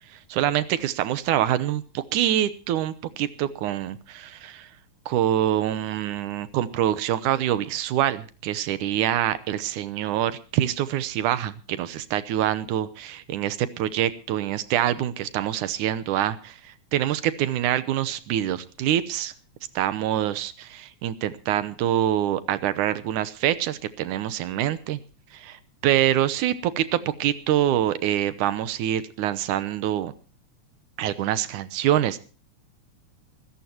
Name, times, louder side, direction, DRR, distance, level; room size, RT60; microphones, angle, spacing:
voice 1, 0.1-4.7 5.1-19.3 19.8-25.0 25.3-30.1 31.0-32.2, right 11 dB, 85° right, 14 dB, 2.5 m, -25 dB
25.5 x 14.0 x 2.9 m, 0.36 s
omnidirectional pair, 3.4 m